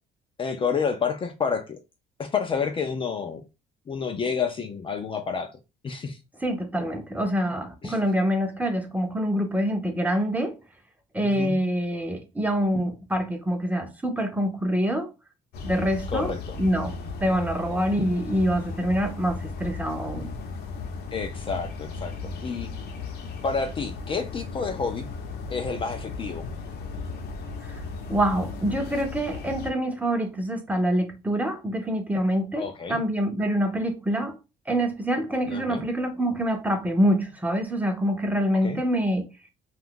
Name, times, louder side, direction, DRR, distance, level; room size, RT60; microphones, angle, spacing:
voice 1, 0.4-1.8 2.2-3.4 3.9-5.5 5.8-6.2 7.8-8.0 11.2-11.6 16.1-16.6 21.1-22.1 22.4-22.7 23.4-25.1 25.5-26.5 32.6-33.0 35.5-35.8 38.6-38.8, left 5 dB, 30° left, 0.5 m, -29 dB
voice 2, 6.4-10.6 11.1-15.1 15.6-16.3 16.6-20.3 27.6-27.8 28.1-34.4 34.7-39.2, equal, 10° right, 0.6 m, -26 dB
sound 1, 15.5-29.7, left 4 dB, 70° left, 0.8 m, -36 dB
2.5 x 2.4 x 3.7 m
cardioid pair, 110°, 17 cm